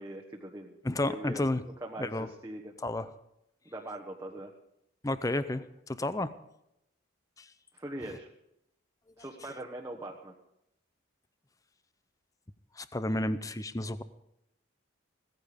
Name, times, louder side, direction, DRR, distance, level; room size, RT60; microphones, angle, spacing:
voice 1, 0.0-0.8 1.1-1.4 1.8-2.7 3.6-4.5 7.7-8.3 9.2-10.3, right 1 dB, 15° right, -2 dB, 1.2 m, -41 dB
voice 2, 0.8-1.6 2.0-2.3 2.8-3.1 5.0-6.3 7.4-7.5 12.8-14.0, left 1 dB, 15° left, 13 dB, 0.6 m, -31 dB
17.0 x 14.5 x 5.2 m, 0.82 s
head